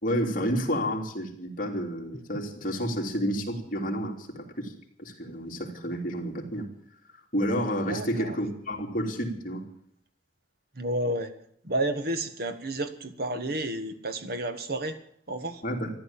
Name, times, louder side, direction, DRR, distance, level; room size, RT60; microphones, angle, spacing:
voice 1, 0.0-4.7 5.0-6.7 7.3-9.6 15.6-15.9, equal, 50° left, 1 dB, 3.1 m, -30 dB
voice 2, 7.9-8.4 10.7-11.3 11.6-15.0 15.3-15.6, right 1 dB, 55° right, 9 dB, 1.6 m, -31 dB
14.5 x 11.5 x 8.8 m, 0.66 s
head